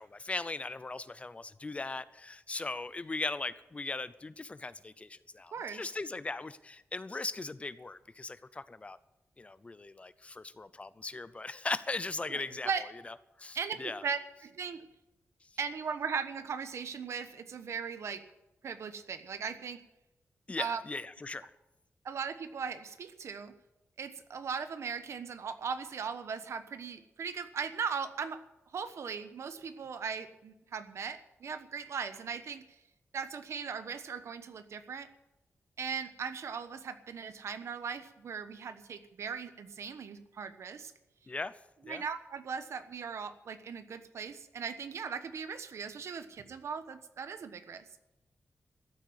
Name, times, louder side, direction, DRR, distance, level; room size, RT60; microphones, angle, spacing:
voice 1, 0.0-9.0 9.4-12.7 13.0-14.0 20.5-21.5 41.3-41.5 41.9-42.0, left 3 dB, 25° left, 15 dB, 0.6 m, -39 dB
voice 2, 5.5-5.9 12.3-12.8 13.5-14.9 15.6-18.2 18.6-19.8 20.6-20.8 22.0-23.5 24.0-28.4 28.7-32.6 33.1-35.1 35.8-40.9 41.8-47.8, right 6 dB, 90° right, 10 dB, 1.2 m, -38 dB
14.5 x 8.7 x 9.7 m, 0.95 s
wide cardioid pair, 135°, 5 cm